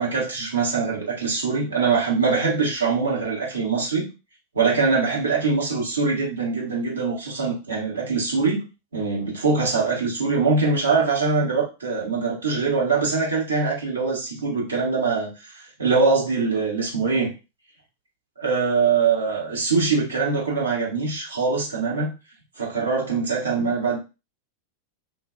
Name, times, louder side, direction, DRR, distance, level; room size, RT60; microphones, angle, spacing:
voice 1, 0.0-4.1 4.5-8.6 8.9-15.3 15.8-17.3 18.4-22.1 22.6-24.0, right 4 dB, 70° right, -3 dB, 1.2 m, -23 dB
2.5 x 2.2 x 2.4 m, 0.28 s
figure-of-eight pair, 90°, 0 cm